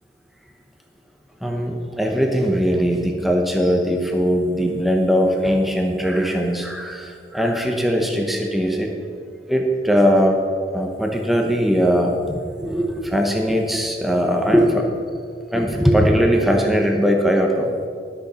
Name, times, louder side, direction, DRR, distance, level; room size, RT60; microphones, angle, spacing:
voice 1, 1.4-8.9 9.5-10.4 10.7-14.8 15.5-17.7, equal, ahead, 1 dB, 0.9 m, -20 dB
13.0 x 6.7 x 5.6 m, 2.2 s
head